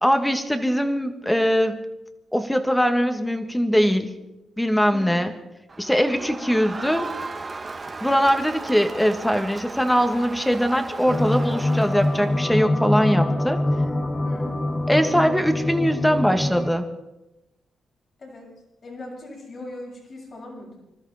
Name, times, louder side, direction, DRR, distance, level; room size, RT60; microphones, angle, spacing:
voice 1, 0.0-1.8 2.3-4.2 4.6-5.3 5.8-7.1 8.0-13.6 14.9-16.9, equal, 5° left, 7 dB, 1.9 m, -21 dB
voice 2, 4.9-5.2 14.2-14.5 18.2-18.5 18.8-20.8, left 2 dB, 50° left, -1 dB, 6.9 m, -39 dB
Crowd, 5.7-12.5, right 3 dB, 35° right, 1.6 m, -36 dB
sound 1, 11.1-16.7, left 1 dB, 25° left, 1.5 m, -24 dB
25.5 x 13.0 x 4.3 m, 0.97 s
cardioid pair, 70°, 0 cm